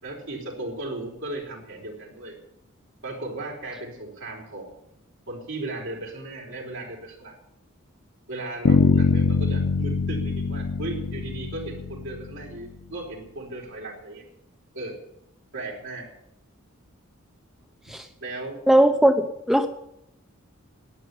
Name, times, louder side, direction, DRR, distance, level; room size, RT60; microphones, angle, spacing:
voice 1, 0.0-2.4 3.0-4.7 5.3-7.4 8.3-14.2 14.7-15.0 15.5-16.1 18.2-18.6, right 2 dB, 65° right, 0 dB, 4.6 m, -36 dB
Bass guitar, 8.7-12.6, left 4 dB, 70° left, 0.8 m, -23 dB
voice 2, 18.7-19.7, right 1 dB, ahead, 5 dB, 0.8 m, -19 dB
12.5 x 9.3 x 9.7 m, 0.81 s
head